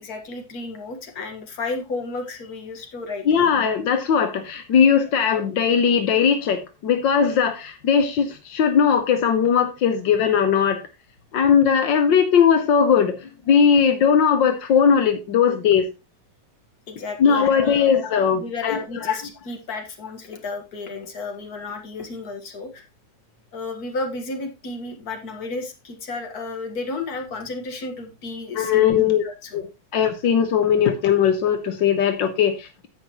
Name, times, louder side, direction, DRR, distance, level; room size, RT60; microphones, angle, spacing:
voice 1, 0.0-3.3 16.9-17.9 18.3-22.8 23.5-29.6, left 3 dB, 55° left, 3 dB, 2.1 m, -32 dB
voice 2, 3.3-10.9 11.3-15.9 17.2-19.2 28.6-29.2 29.5-29.7 29.9-32.9, left 7 dB, 85° left, 7 dB, 1.8 m, -19 dB
16.0 x 5.6 x 3.0 m, 0.26 s
omnidirectional pair, 1.9 m